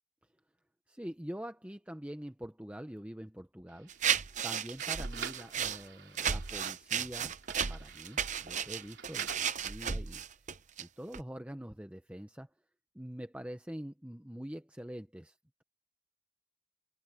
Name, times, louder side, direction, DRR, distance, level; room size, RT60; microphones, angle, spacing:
voice 1, 0.9-3.9 4.4-7.4 7.7-10.2 10.8-12.5 12.9-15.6, equal, 5° right, 0.9 m, -45 dB
sound 1, 3.7-9.6, right 7 dB, 65° right, 4.1 m, -49 dB
sound 2, 3.9-5.8 6.2-10.8 11.1-11.2, right 8 dB, 40° right, 0.7 m, -34 dB
head